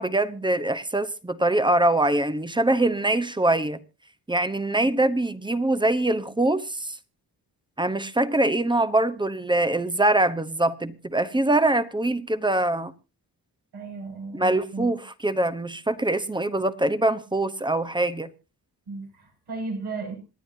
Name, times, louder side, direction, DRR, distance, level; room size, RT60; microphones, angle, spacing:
voice 1, 0.0-3.8 4.3-7.0 7.8-12.9 14.3-18.3, right 2 dB, 10° right, 0.9 m, -23 dB
voice 2, 13.7-14.9 18.9-20.1, right 4 dB, 80° right, 6.6 m, -35 dB
27.0 x 10.0 x 2.7 m
cardioid pair, 90°, 39 cm